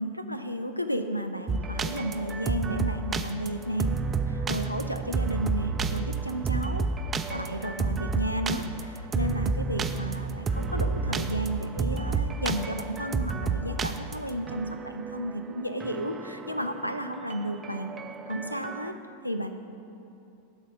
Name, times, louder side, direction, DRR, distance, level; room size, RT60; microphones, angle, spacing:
voice 1, 0.0-3.9 4.3-6.9 7.3-17.9 18.3-18.9 19.2-19.5, equal, 90° left, 8 dB, 0.5 m, -33 dB
sound 1, 1.5-18.9, right 4 dB, 20° right, 0.3 m, -31 dB
11.0 x 4.0 x 6.1 m, 2.7 s
figure-of-eight pair, 90°, 0 cm